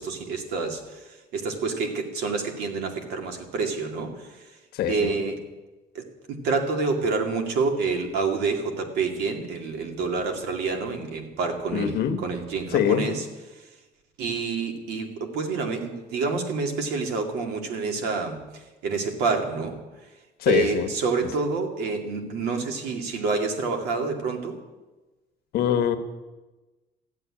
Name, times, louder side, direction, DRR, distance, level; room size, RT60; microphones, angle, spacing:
voice 1, 0.0-4.4 4.9-5.4 5.9-13.3 14.2-19.7 20.5-24.6, right 4 dB, 75° right, 4 dB, 2.3 m, -28 dB
voice 2, 4.7-5.2 11.7-12.2 12.7-13.1 20.4-20.9 25.5-26.0, left 9 dB, 65° left, 9 dB, 1.2 m, -23 dB
14.5 x 8.2 x 9.7 m, 1.1 s
cardioid pair, 175°, 17 cm